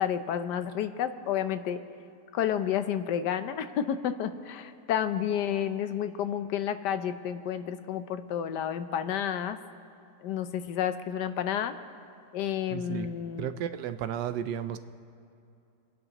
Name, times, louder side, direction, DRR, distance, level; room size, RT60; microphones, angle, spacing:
voice 1, 0.0-1.8 2.3-9.6 10.2-11.7 12.3-13.7, left 9 dB, 75° left, 10 dB, 1.2 m, -30 dB
voice 2, 12.7-13.1 13.4-14.8, right 10 dB, 85° right, 11 dB, 1.2 m, -33 dB
30.0 x 11.0 x 2.9 m, 2.6 s
omnidirectional pair, 1.9 m